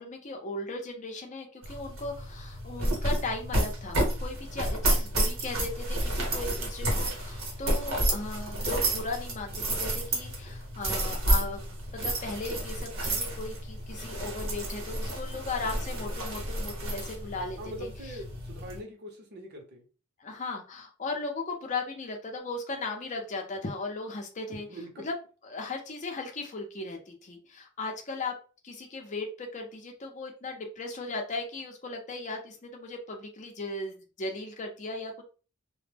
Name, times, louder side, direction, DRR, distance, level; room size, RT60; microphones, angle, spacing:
voice 1, 0.0-18.2 20.2-24.7 25.0-25.1 25.4-28.4 28.6-35.2, left 3 dB, 35° left, 2 dB, 0.6 m, -37 dB
sound 1, 1.6-18.8, right 1 dB, 70° right, 0.9 m, -31 dB
voice 2, 17.6-19.8 24.6-25.1, equal, 50° right, 2 dB, 0.7 m, -42 dB
2.1 x 2.0 x 3.3 m, 0.36 s
head